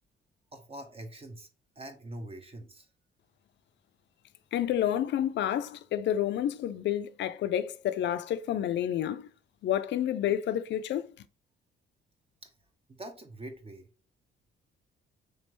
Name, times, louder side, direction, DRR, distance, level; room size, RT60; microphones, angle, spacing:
voice 1, 0.5-1.5 1.8-2.9 12.4-12.5 12.9-13.9, right 1 dB, 30° right, 0.7 m, -44 dB
voice 2, 4.5-9.3 9.6-11.1, left 11 dB, 65° left, 0.4 m, -29 dB
3.7 x 3.1 x 3.0 m
cardioid pair, 90°, 20 cm